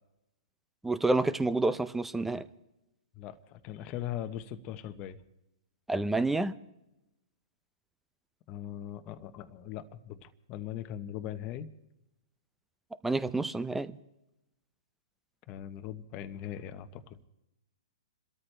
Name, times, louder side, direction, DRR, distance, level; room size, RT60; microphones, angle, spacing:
voice 1, 0.8-2.4 5.9-6.5 13.0-13.9, right 2 dB, 5° right, 14 dB, 0.6 m, -28 dB
voice 2, 3.1-5.2 8.5-11.7 15.5-17.2, left 11 dB, 35° left, 9 dB, 1.1 m, -40 dB
28.5 x 13.0 x 3.4 m, 0.91 s
hypercardioid pair, 130°, 3 cm